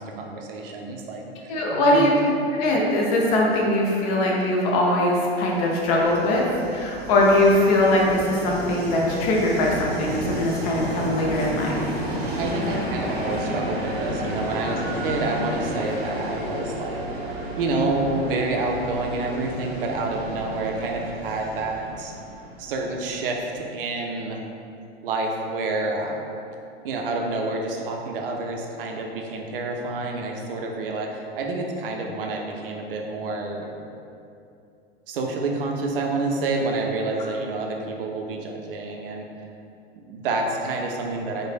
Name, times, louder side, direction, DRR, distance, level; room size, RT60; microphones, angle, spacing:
voice 1, 0.0-2.0 12.4-17.0 17.4-22.1 22.6-24.4 25.0-26.3 26.8-33.7 35.1-39.2 40.0-41.5, right 2 dB, 60° right, 1 dB, 0.5 m, -28 dB
voice 2, 1.5-2.1 2.5-6.4 6.7-11.8, left 1 dB, 40° left, -2 dB, 0.5 m, -21 dB
Train, 5.4-23.2, equal, 30° right, 0.8 m, -32 dB
3.1 x 2.1 x 2.4 m, 2.6 s
figure-of-eight pair, 90°, 32 cm